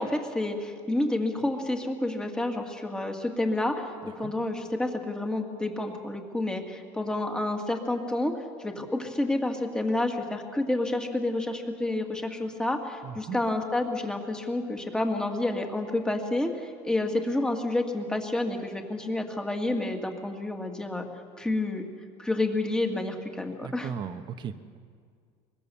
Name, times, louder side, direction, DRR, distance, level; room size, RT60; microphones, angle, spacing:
voice 1, 0.0-8.3 8.6-21.1 21.4-21.8 22.2-23.9, left 2 dB, 5° left, 3 dB, 2.1 m, -29 dB
voice 2, 13.0-13.4 23.6-24.8, right 7 dB, 40° right, 9 dB, 1.2 m, -37 dB
23.0 x 23.0 x 7.0 m, 2.1 s
cardioid pair, 145°, 12 cm